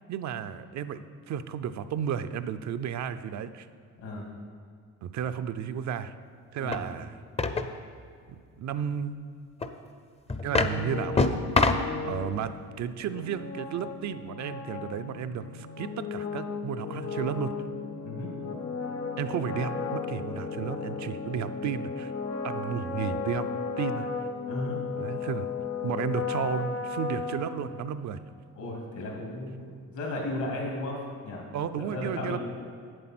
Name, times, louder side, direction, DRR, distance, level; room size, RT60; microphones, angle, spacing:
voice 1, 0.1-3.7 5.0-6.1 6.5-7.1 8.6-9.2 10.4-11.4 12.0-12.5 12.8-17.5 19.2-22.1 22.4-23.5 23.8-24.1 25.0-25.4 25.8-28.2 31.5-32.4, right 8 dB, 65° right, 11 dB, 0.6 m, -33 dB
sound 1, 6.7-6.8 7.4-7.7 9.6-9.7 10.3-10.8 11.2-11.9, left 3 dB, 20° left, 0.6 m, -24 dB
sound 2, 10.5-28.1, left 5 dB, 55° left, 0.8 m, -35 dB
voice 2, 24.5-24.8 28.6-31.4 31.8-32.4, left 2 dB, 75° left, -1 dB, 2.7 m, -35 dB
8.0 x 7.8 x 6.0 m, 2.2 s
cardioid pair, 90°, 30 cm